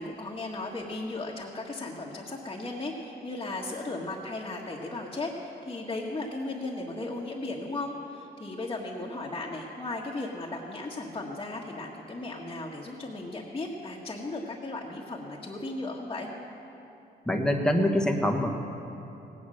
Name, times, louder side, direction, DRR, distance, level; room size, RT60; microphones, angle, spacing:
voice 1, 0.0-16.3, left 2 dB, 25° left, -4 dB, 1.6 m, -36 dB
voice 2, 17.3-18.5, left 1 dB, 5° left, 2 dB, 1.4 m, -24 dB
17.5 x 9.6 x 6.5 m, 2.9 s
cardioid pair, 90°, 18 cm